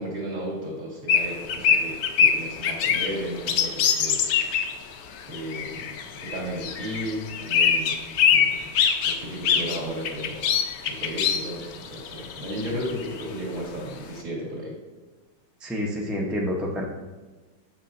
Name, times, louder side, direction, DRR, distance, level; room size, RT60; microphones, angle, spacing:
voice 1, 0.0-4.2 5.2-8.7 9.0-10.6 10.9-14.8, equal, 45° right, -4 dB, 2.2 m, -34 dB
sound 1, 1.1-4.8 5.2-13.2, left 7 dB, 70° left, 1.0 m, -23 dB
voice 2, 15.6-16.8, left 1 dB, ahead, -2 dB, 0.3 m, -28 dB
7.1 x 6.0 x 2.7 m, 1.3 s
omnidirectional pair, 1.9 m